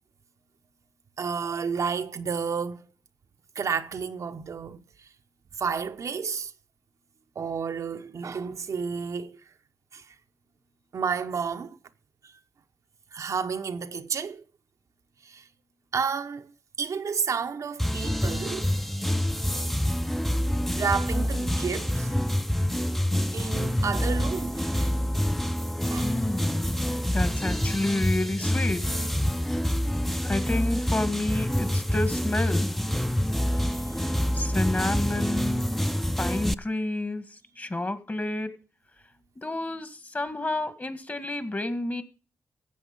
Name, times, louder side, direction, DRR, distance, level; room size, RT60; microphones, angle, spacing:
voice 1, 1.2-2.9 3.5-4.8 5.6-6.5 7.3-9.4 9.9-10.2 10.9-11.8 12.2-12.3 13.1-14.4 15.2-15.5 15.9-16.5 16.8-18.7 20.8-22.2 23.3-24.9 25.8-26.1 33.6-34.3, right 6 dB, 70° right, 0.9 m, -31 dB
sound 1, 17.8-36.5, equal, 5° left, 0.6 m, -27 dB
voice 2, 26.0-26.8 27.1-28.8 30.2-32.7 34.3-35.7 36.2-38.5 39.4-42.0, left 2 dB, 30° left, 2.0 m, -30 dB
15.0 x 7.9 x 5.4 m
cardioid pair, 50°, 6 cm